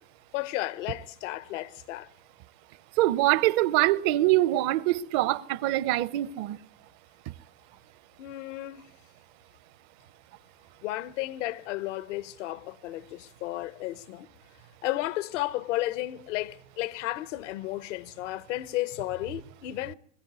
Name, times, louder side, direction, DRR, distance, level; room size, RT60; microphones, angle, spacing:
voice 1, 0.3-2.1 8.2-8.9 10.8-14.3 14.8-19.9, left 16 dB, 70° left, 0.9 m, -33 dB
voice 2, 3.0-6.6, right 16 dB, 50° right, 0.8 m, -24 dB
21.5 x 14.5 x 9.4 m
supercardioid pair, 120°, 38 cm